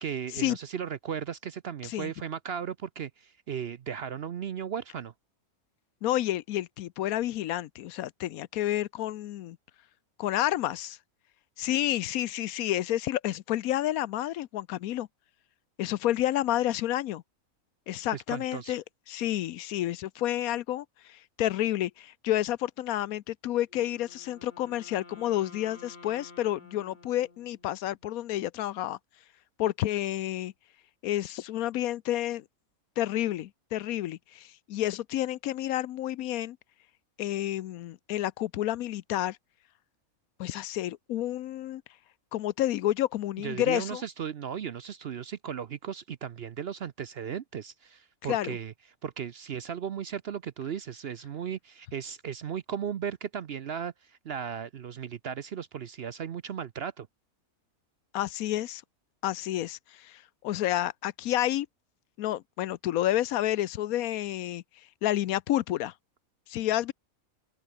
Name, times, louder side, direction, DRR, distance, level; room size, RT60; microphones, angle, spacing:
voice 1, 0.0-5.1 18.1-18.8 43.4-48.7 49.0-57.1, right 8 dB, 55° right, 0.8 m, -36 dB
voice 2, 6.0-9.6 10.2-11.0 11.6-15.1 15.8-17.2 17.9-29.0 29.6-30.5 31.0-32.4 33.0-36.6 37.2-39.4 40.4-41.8 42.3-44.0 48.3-48.6 58.1-58.8 59.2-61.7 62.2-64.6 65.0-65.9 66.5-66.9, left 13 dB, 75° left, 1.1 m, -30 dB
Wind instrument woodwind instrument, 23.7-27.9, left 3 dB, 30° left, 2.3 m, -52 dB
open air
omnidirectional pair, 1.5 m